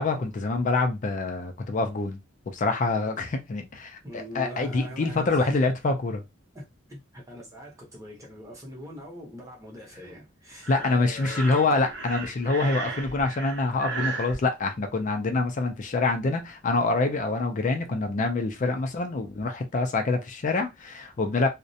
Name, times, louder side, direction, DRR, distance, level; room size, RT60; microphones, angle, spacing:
voice 1, 0.0-2.2 2.5-4.0 4.3-6.2 10.7-21.5, left 3 dB, 40° left, 0.4 m, -26 dB
voice 2, 4.0-5.6 6.5-11.9 18.6-18.8, equal, 15° right, 0.8 m, -43 dB
Breathing, 10.6-14.4, right 4 dB, 60° right, 0.7 m, -35 dB
2.4 x 2.1 x 2.7 m
head